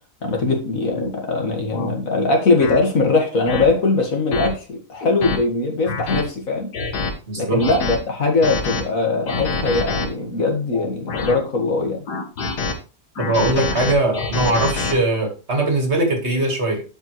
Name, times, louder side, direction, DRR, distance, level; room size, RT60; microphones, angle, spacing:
voice 1, 0.2-6.7 7.4-12.0, left 3 dB, 55° left, 1 dB, 2.0 m, -21 dB
sound 1, 0.9-1.1 1.7-1.9 2.6-2.8 3.5-3.7 4.3-4.5 5.0-5.4 5.9-6.2 6.7-7.1 7.6-8.0 8.4-8.8 9.3-10.1 10.7-11.4 12.1-12.7 13.2-14.9, left 4 dB, 90° left, 1.8 m, -25 dB
voice 2, 7.3-7.6 13.2-16.8, right 2 dB, 40° right, 3 dB, 1.9 m, -20 dB
11.5 x 4.9 x 3.1 m, 0.35 s
omnidirectional pair, 1.7 m